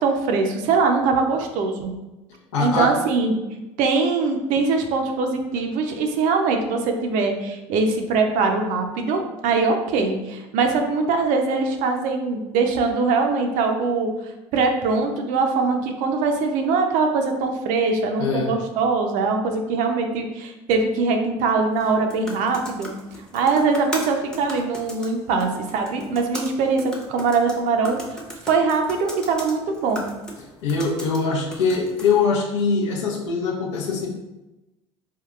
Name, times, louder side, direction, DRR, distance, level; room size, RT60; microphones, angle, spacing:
voice 1, 0.0-1.9 2.6-3.4 3.8-14.1 14.5-22.9 23.3-28.0 28.4-30.0, right 4 dB, 60° right, 4 dB, 0.5 m, -22 dB
voice 2, 2.5-2.9 18.2-18.5 30.6-34.1, left 5 dB, 80° left, -1 dB, 0.7 m, -22 dB
sound 1, 21.7-32.3, equal, 5° left, 0.7 m, -38 dB
3.6 x 2.2 x 2.3 m, 1.0 s
hypercardioid pair, 75°, 15 cm